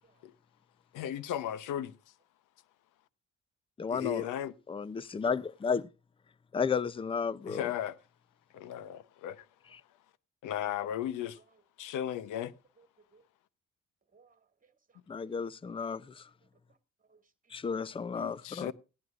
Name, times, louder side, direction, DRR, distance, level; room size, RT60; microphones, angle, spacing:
voice 1, 0.9-2.0 3.9-4.5 7.4-8.0 8.5-9.5 10.4-11.4 11.8-12.5 18.2-18.7, left 11 dB, 85° left, 0.8 m, -36 dB
voice 2, 3.8-4.2 4.7-5.9 6.5-7.6 15.1-16.2 17.5-18.7, left 5 dB, 20° left, 0.5 m, -33 dB
voice 3, 12.8-13.2 14.1-15.3 16.4-16.8 17.0-17.8, right 4 dB, 25° right, 2.1 m, -65 dB
17.0 x 10.5 x 2.4 m
cardioid pair, 90°, 30 cm